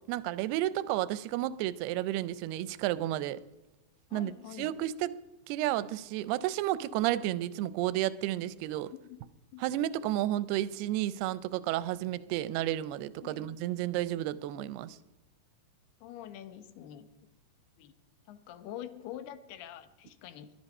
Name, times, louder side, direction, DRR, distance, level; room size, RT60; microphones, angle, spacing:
voice 1, 0.1-3.4 4.1-4.3 4.6-5.1 5.5-8.9 9.6-15.0, right 14 dB, 90° right, 2.6 m, -32 dB
voice 2, 4.1-4.7 8.9-9.2 9.5-9.6 13.2-13.5 16.0-17.1 17.8-17.9 18.3-20.6, left 11 dB, 85° left, 3.0 m, -45 dB
21.0 x 11.5 x 5.4 m
omnidirectional pair, 4.5 m